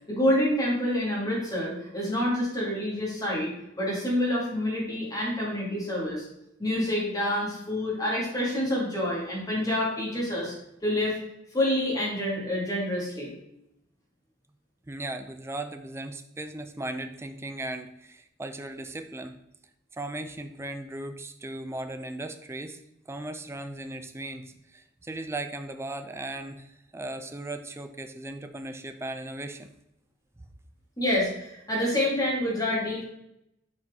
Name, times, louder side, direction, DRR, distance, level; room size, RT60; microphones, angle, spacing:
voice 1, 0.1-6.3 6.6-10.5 10.8-11.2 11.5-13.3 31.0-33.0, left 1 dB, 20° left, -5 dB, 2.0 m, -27 dB
voice 2, 14.9-19.4 19.9-22.8 23.1-29.7, right 2 dB, 15° right, 8 dB, 0.4 m, -37 dB
6.5 x 4.4 x 3.6 m, 0.82 s
head